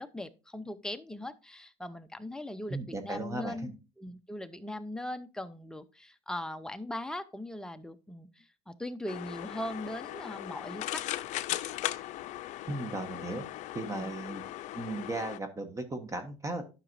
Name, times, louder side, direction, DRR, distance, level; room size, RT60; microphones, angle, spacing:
voice 1, 0.0-2.8 3.0-3.7 4.0-11.0 13.3-13.4 13.9-14.1, left 1 dB, 5° left, 9 dB, 0.6 m, -40 dB
voice 2, 2.7-3.7 12.7-13.4 13.7-14.4 14.7-16.6, right 2 dB, 20° right, 7 dB, 1.2 m, -36 dB
sound 1, 9.1-15.4, left 15 dB, 60° left, 0.5 m, -38 dB
11.0 x 5.9 x 2.6 m, 0.31 s
cardioid pair, 110°, 14 cm